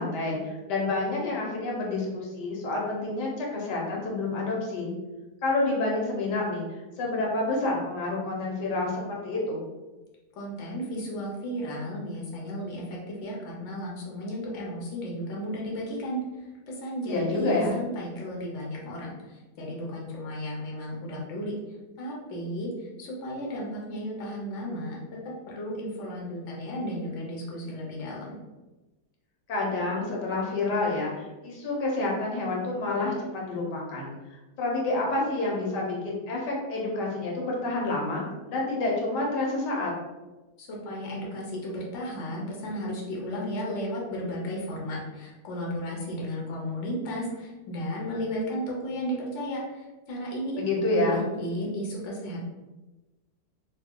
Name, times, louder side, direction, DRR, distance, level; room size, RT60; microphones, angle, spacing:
voice 1, 0.0-4.9 5.4-9.6 17.1-17.8 29.5-34.1 34.6-39.9 50.6-51.2, left 2 dB, 80° left, -2 dB, 1.5 m, -28 dB
voice 2, 10.4-16.2 16.7-21.5 22.0-28.4 40.6-52.4, equal, 55° left, -3 dB, 1.0 m, -34 dB
2.8 x 2.6 x 3.6 m, 1.1 s
omnidirectional pair, 1.8 m